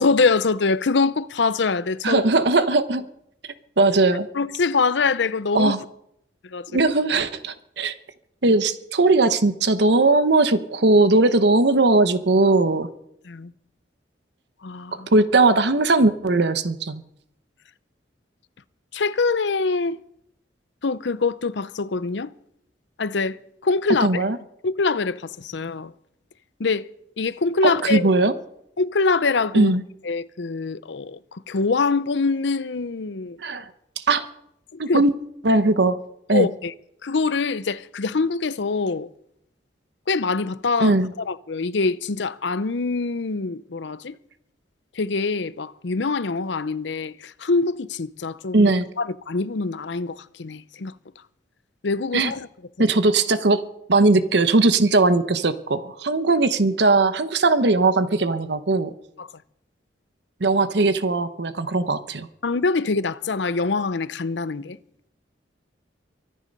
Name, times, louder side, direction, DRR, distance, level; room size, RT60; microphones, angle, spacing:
voice 1, 0.0-2.3 4.3-5.7 6.5-6.7 13.3-13.5 14.6-15.1 18.9-20.0 20.8-22.3 23.0-23.4 23.6-24.1 24.6-25.9 26.6-26.9 27.2-28.1 28.8-29.7 30.0-33.4 34.9-35.0 36.3-36.7 37.0-39.1 40.1-44.1 45.0-48.7 49.0-50.9 51.8-52.5 59.2-59.3 62.4-64.8, left 4 dB, 70° left, 0.6 m, -24 dB
voice 2, 2.0-3.0 3.8-4.3 5.5-5.8 6.7-7.9 8.4-12.9 15.1-17.0 24.0-24.4 27.6-28.3 29.5-29.8 33.4-33.6 34.0-34.3 34.8-35.1 35.4-36.0 36.3-36.5 40.8-41.1 48.5-48.9 52.1-52.3 52.8-53.6 53.9-58.9 60.4-62.3, right 3 dB, 65° right, 0.9 m, -19 dB
24.0 x 10.0 x 5.4 m
head